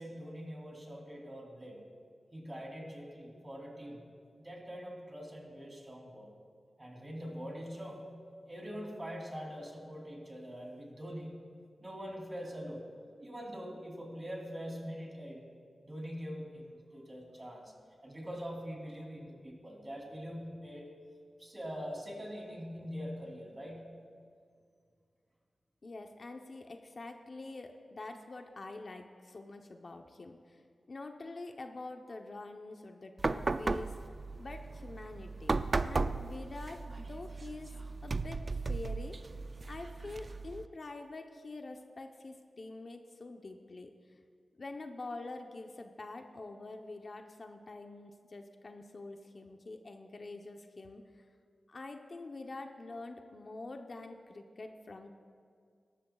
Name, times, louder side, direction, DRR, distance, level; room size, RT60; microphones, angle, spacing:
voice 1, 0.0-1.8 2.3-4.0 4.4-6.3 6.8-11.4 11.8-12.8 13.2-15.5 15.8-17.7 18.0-20.9 21.4-24.0, equal, 25° right, -1 dB, 3.1 m, -43 dB
voice 2, 25.8-30.6 30.9-34.0 34.4-35.6 35.8-37.7 38.0-39.2 39.7-43.9 44.6-51.2 51.7-55.1, left 2 dB, 55° left, 4 dB, 0.8 m, -46 dB
sound 1, 33.2-40.7, right 3 dB, 45° right, 0.4 m, -36 dB
18.0 x 13.5 x 2.4 m, 2.2 s
wide cardioid pair, 70°, 0 cm